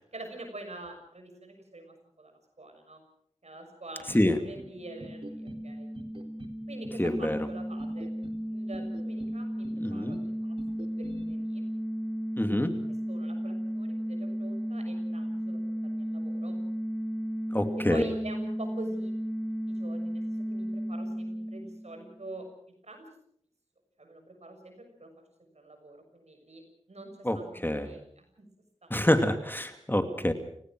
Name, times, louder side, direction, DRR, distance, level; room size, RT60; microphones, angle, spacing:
voice 1, 0.1-3.0 3.4-5.9 6.7-8.1 8.5-10.2 10.4-10.6 11.0-11.7 13.1-16.6 17.8-19.1 19.7-22.5 22.8-23.0 24.0-25.1 25.4-26.6 26.9-27.6 27.8-28.5 28.8-29.3, right 2 dB, 75° right, 5 dB, 6.5 m, -45 dB
sound 1, 4.1-4.7 5.0-5.6 5.9-6.6 6.8-7.5 7.8-8.4 8.7-9.3 9.6-10.3 10.6-11.2, right 2 dB, 50° right, 3.8 m, -46 dB
sound 2, 4.8-22.3, equal, 5° right, 2.5 m, -34 dB
voice 2, 7.0-7.4 9.8-10.2 12.4-12.7 17.5-18.0 27.2-28.0 28.9-30.3, left 1 dB, 20° left, 7 dB, 2.6 m, -26 dB
30.0 x 17.5 x 6.3 m, 0.67 s
wide cardioid pair, 45°, 11 cm